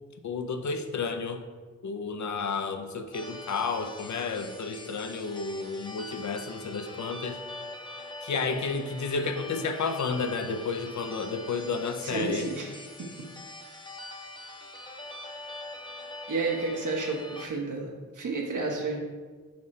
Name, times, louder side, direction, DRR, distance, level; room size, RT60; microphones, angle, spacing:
voice 1, 0.2-1.4 1.8-7.4 8.2-12.5, left 4 dB, 70° left, 7 dB, 0.6 m, -31 dB
sound 1, 3.1-17.5, left 2 dB, 15° left, 0.7 m, -43 dB
voice 2, 12.0-12.7 13.0-13.1 16.3-19.0, right 3 dB, 85° right, 0 dB, 1.3 m, -31 dB
5.8 x 4.9 x 4.3 m, 1.4 s
wide cardioid pair, 150°, 30 cm